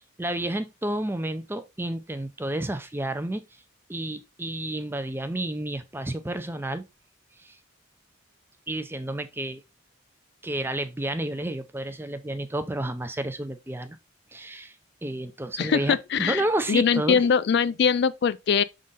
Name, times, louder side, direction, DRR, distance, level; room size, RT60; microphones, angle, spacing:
voice 1, 0.2-3.4 3.9-6.8 7.4-7.6 8.7-9.6 10.4-14.0 14.3-14.7 15.0-17.2, right 1 dB, 10° right, 0.5 m, -30 dB
voice 2, 15.6-18.6, left 6 dB, 55° left, 0.3 m, -22 dB
6.3 x 3.8 x 4.0 m
head